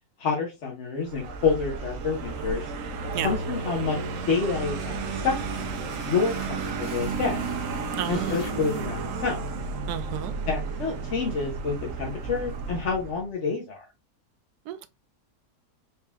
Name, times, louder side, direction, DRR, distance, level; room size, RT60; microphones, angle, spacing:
voice 1, 0.2-2.7 3.2-7.4 8.1-9.4 10.5-13.8, left 5 dB, 55° left, 1.1 m, -28 dB
Vehicle, 1.0-13.3, right 4 dB, 65° right, 1.0 m, -32 dB
sound 1, 4.8-9.3, left 1 dB, 85° left, 2.0 m, -47 dB
voice 2, 8.0-8.4 9.9-10.3 14.7-14.9, right 12 dB, 85° right, 1.1 m, -32 dB
4.3 x 3.6 x 2.3 m
omnidirectional pair, 1.7 m